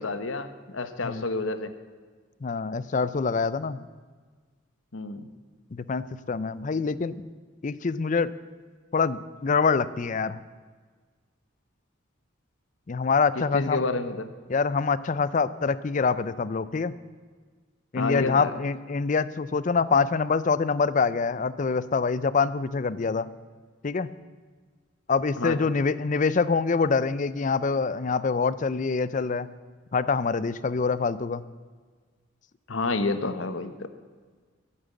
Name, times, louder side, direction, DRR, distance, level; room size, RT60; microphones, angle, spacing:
voice 1, 0.0-1.7 4.9-5.3 13.5-14.3 17.9-18.5 25.4-25.6 32.7-33.9, left 3 dB, 70° left, 10 dB, 1.0 m, -29 dB
voice 2, 2.4-3.8 5.7-7.2 7.6-8.3 8.9-10.4 12.9-13.8 14.5-16.9 17.9-23.3 23.8-24.1 25.1-29.5 29.9-31.4, left 4 dB, 40° left, 17 dB, 0.4 m, -25 dB
13.0 x 8.8 x 8.2 m, 1.5 s
head